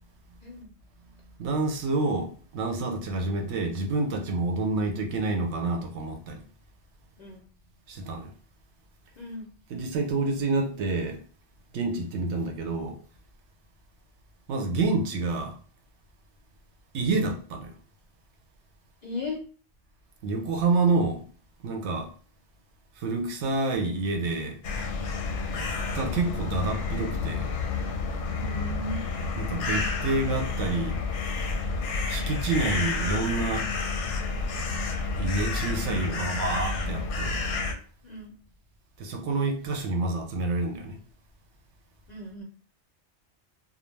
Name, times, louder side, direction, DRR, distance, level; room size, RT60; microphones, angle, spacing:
voice 1, 0.4-0.7 7.2-7.4 9.2-9.5 19.0-19.4 28.3-29.0 38.0-38.3 42.1-42.4, left 2 dB, 55° left, 0.5 m, -36 dB
voice 2, 1.4-6.4 7.9-8.3 9.7-11.2 11.7-13.0 14.5-15.6 16.9-17.7 20.2-21.2 21.6-22.1 23.0-24.6 25.9-27.5 29.4-31.0 32.1-33.7 35.2-37.4 39.0-41.0, right 3 dB, 75° right, 0.8 m, -28 dB
sound 1, 24.6-37.7, left 4 dB, 90° left, 0.9 m, -30 dB
2.4 x 2.1 x 3.1 m
omnidirectional pair, 1.2 m